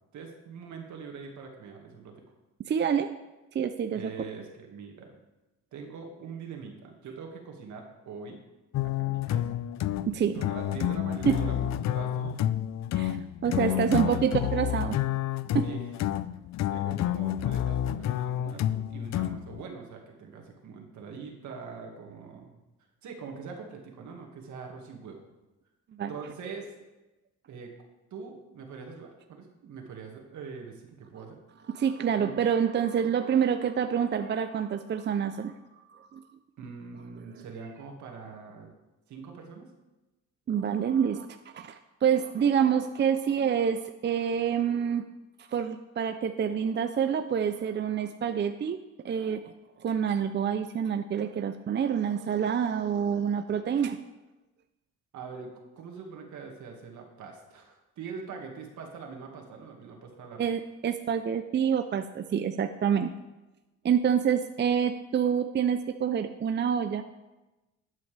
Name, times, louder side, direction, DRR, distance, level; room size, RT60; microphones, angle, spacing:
voice 1, 0.1-2.1 3.9-5.2 5.7-8.4 8.8-9.5 10.3-12.4 13.6-14.3 15.6-15.9 16.7-22.6 23.0-25.2 26.1-26.7 27.5-27.7 28.1-31.4 32.2-32.3 36.6-38.7 39.1-39.7 55.1-60.4, right 5 dB, 70° right, 2 dB, 2.0 m, -43 dB
voice 2, 2.7-3.1 3.5-4.1 10.1-10.3 11.3-11.4 12.9-13.2 13.4-15.0 15.5-15.6 26.0-26.1 31.7-35.5 35.9-36.2 40.5-45.0 45.5-48.8 49.0-49.5 49.8-54.0 60.4-63.1 63.8-67.0, right 8 dB, 35° right, 8 dB, 0.5 m, -27 dB
sound 1, 8.7-19.6, left 12 dB, 65° left, 0.5 m, -29 dB
12.5 x 8.3 x 3.4 m, 1.1 s
cardioid pair, 90°, 30 cm